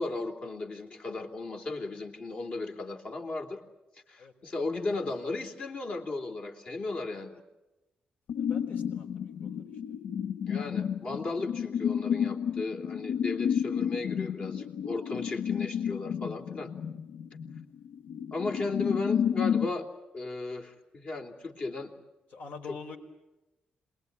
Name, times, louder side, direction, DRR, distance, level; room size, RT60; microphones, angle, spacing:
voice 1, 0.0-3.6 4.1-7.4 10.5-16.7 18.3-19.9 20.1-21.9 22.7-22.8, left 3 dB, 45° left, 3 dB, 3.5 m, -35 dB
sound 1, 8.3-19.7, left 8 dB, 90° left, 1.3 m, -31 dB
voice 2, 8.4-9.7 22.3-23.0, left 5 dB, 65° left, 5 dB, 4.6 m, -45 dB
27.5 x 21.0 x 9.7 m, 1.0 s
cardioid pair, 125°, 3 cm